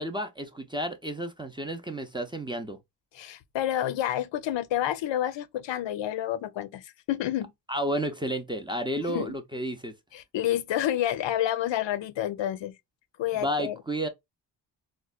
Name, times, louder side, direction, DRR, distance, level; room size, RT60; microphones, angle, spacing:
voice 1, 0.0-2.8 7.7-9.9 13.3-14.1, equal, 10° right, 0.4 m, -31 dB
voice 2, 3.1-7.5 9.1-9.4 10.1-12.8 13.2-13.8, left 12 dB, 80° left, 0.5 m, -29 dB
4.3 x 2.1 x 2.3 m
wide cardioid pair, 120°, 44 cm